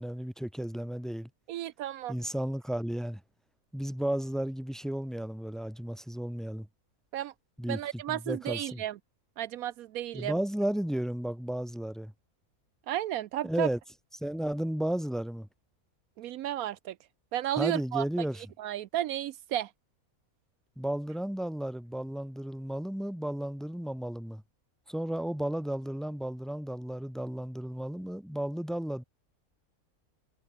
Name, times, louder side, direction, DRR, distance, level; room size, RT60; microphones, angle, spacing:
voice 1, 0.0-1.3 2.1-3.2 3.7-6.7 7.6-8.8 10.1-12.1 13.4-13.8 14.2-15.5 17.6-18.4 20.8-24.4 24.9-29.0, right 1 dB, ahead, 1.8 m, -33 dB
voice 2, 1.5-2.1 7.1-7.3 7.7-9.0 9.4-10.3 12.9-13.7 16.2-17.0 17.3-18.3 18.6-19.7, right 12 dB, 80° right, 1.1 m, -33 dB
omnidirectional pair, 1.5 m